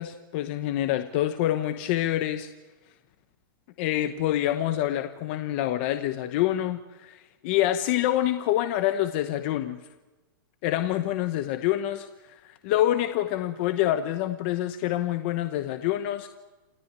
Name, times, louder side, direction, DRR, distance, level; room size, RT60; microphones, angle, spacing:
voice 1, 0.0-2.5 3.8-7.2 7.4-9.8 10.6-16.3, left 13 dB, 30° left, 8 dB, 0.9 m, -26 dB
28.0 x 15.0 x 9.6 m, 1.1 s
supercardioid pair, 180°, 12 cm